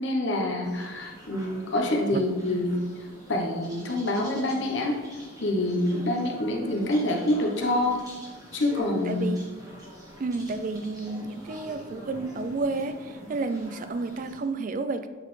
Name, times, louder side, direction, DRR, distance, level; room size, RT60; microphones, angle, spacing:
voice 1, 0.0-2.9 3.3-5.0 5.4-8.0 8.5-9.3, left 1 dB, 60° left, 1 dB, 0.9 m, -26 dB
sound 1, 0.6-14.4, equal, 15° right, 1.2 m, -45 dB
voice 2, 8.8-9.5 10.2-15.1, right 3 dB, 40° right, 10 dB, 0.3 m, -31 dB
8.0 x 4.1 x 3.2 m, 1.4 s
head